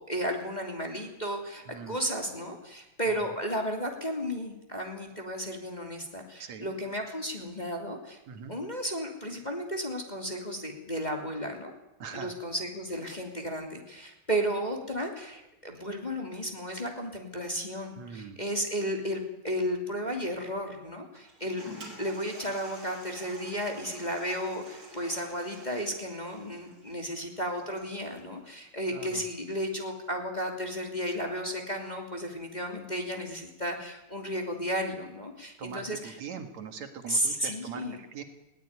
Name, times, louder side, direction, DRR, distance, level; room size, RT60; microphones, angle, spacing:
voice 1, 0.0-8.2 8.5-11.7 12.1-21.6 22.0-36.2 37.1-38.0, equal, 15° left, 2 dB, 2.9 m, -33 dB
voice 2, 1.7-2.0 3.1-3.3 6.4-6.7 8.3-8.6 12.0-12.3 18.0-18.4 28.9-29.3 35.6-38.2, right 6 dB, 70° right, 7 dB, 3.1 m, -42 dB
Toilet flush, 21.1-28.1, right 1 dB, 45° right, 5.8 m, -48 dB
21.0 x 17.5 x 9.7 m, 0.96 s
omnidirectional pair, 3.3 m